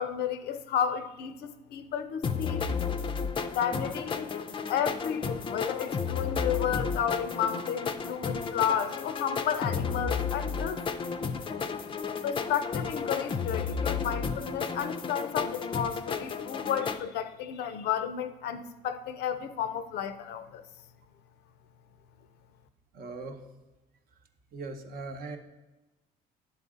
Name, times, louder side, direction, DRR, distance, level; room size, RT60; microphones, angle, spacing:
voice 1, 0.0-2.7 3.5-4.3 4.7-10.8 12.2-20.6, left 8 dB, 75° left, 0.5 m, -32 dB
sound 1, 2.2-17.0, left 5 dB, 30° left, 0.4 m, -33 dB
voice 2, 22.9-23.4 24.5-25.4, right 3 dB, 60° right, 0.8 m, -39 dB
10.5 x 4.1 x 3.7 m
cardioid pair, 110°, 17 cm